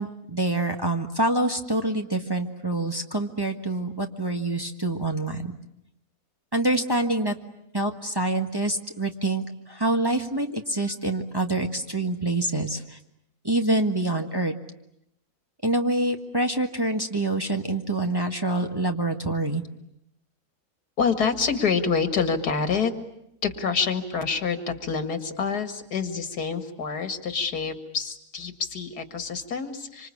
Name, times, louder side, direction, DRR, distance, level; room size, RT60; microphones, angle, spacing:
voice 1, 0.0-5.5 6.5-7.3 7.7-13.0 13.4-14.5 15.6-19.6, right 2 dB, 15° right, 3 dB, 1.5 m, -26 dB
voice 2, 21.0-22.9 23.4-30.1, left 5 dB, 85° left, 8 dB, 2.4 m, -27 dB
26.0 x 26.0 x 8.6 m, 0.79 s
omnidirectional pair, 1.6 m